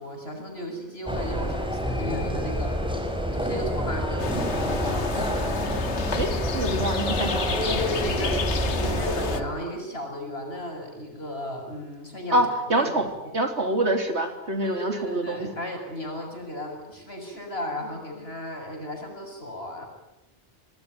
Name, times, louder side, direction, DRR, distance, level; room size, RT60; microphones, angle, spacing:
voice 1, 0.0-2.7 3.3-5.2 7.6-13.3 14.6-19.9, left 1 dB, 60° left, 3 dB, 7.4 m, -35 dB
sound 1, 1.1-9.4, equal, 5° right, 5.7 m, -28 dB
sound 2, 4.2-9.4, left 6 dB, 75° left, 1.6 m, -31 dB
voice 2, 6.2-7.6 12.3-13.1 13.3-15.5, right 1 dB, 70° right, 6 dB, 3.8 m, -26 dB
27.0 x 20.0 x 9.4 m, 0.99 s
omnidirectional pair, 1.2 m